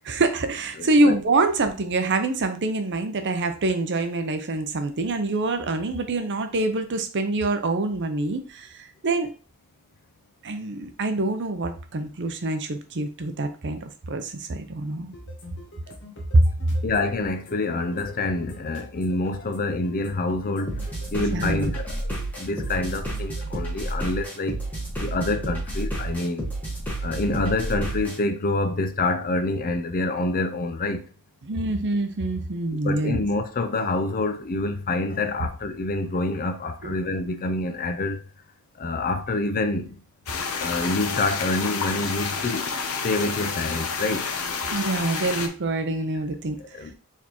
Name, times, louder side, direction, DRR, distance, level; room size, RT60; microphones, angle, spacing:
voice 1, 0.1-9.3 10.4-13.8 14.1-15.1 16.3-16.8 21.3-21.7 31.4-33.2 36.8-37.0 44.7-46.6, right 2 dB, 55° right, 0.6 m, -25 dB
voice 2, 0.8-1.2 16.8-20.8 21.1-21.9 22.4-24.6 25.0-26.5 27.0-31.0 32.8-38.3 38.8-40.0 40.6-42.7 43.0-44.3 46.7-46.9, left 2 dB, 40° left, 0.5 m, -27 dB
sound 1, 15.1-23.4, left 1 dB, 55° left, 1.1 m, -45 dB
sound 2, 20.7-28.2, right 1 dB, 5° left, 1.5 m, -30 dB
sound 3, 40.3-45.5, left 5 dB, 75° left, 0.8 m, -29 dB
4.5 x 3.5 x 3.0 m
head